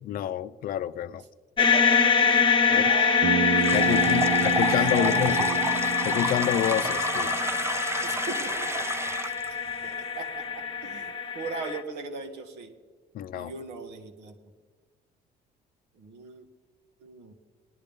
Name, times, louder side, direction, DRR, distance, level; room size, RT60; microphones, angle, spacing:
voice 1, 0.0-1.2 2.7-2.8 3.7-5.5 6.0-7.3 13.1-13.5, left 11 dB, 60° left, 0.5 m, -28 dB
sound 1, 1.6-11.8, left 6 dB, 30° left, 1.0 m, -25 dB
voice 2, 1.6-3.3 3.8-5.7 8.0-8.7 9.8-12.7 13.3-14.4 15.9-16.4 17.0-17.3, right 4 dB, 85° right, 1.5 m, -38 dB
Bass guitar, 3.2-7.5, right 7 dB, 65° right, 0.7 m, -31 dB
sound 2, 3.6-9.5, right 3 dB, 15° right, 0.5 m, -32 dB
19.0 x 10.5 x 3.6 m
cardioid pair, 110°, 17 cm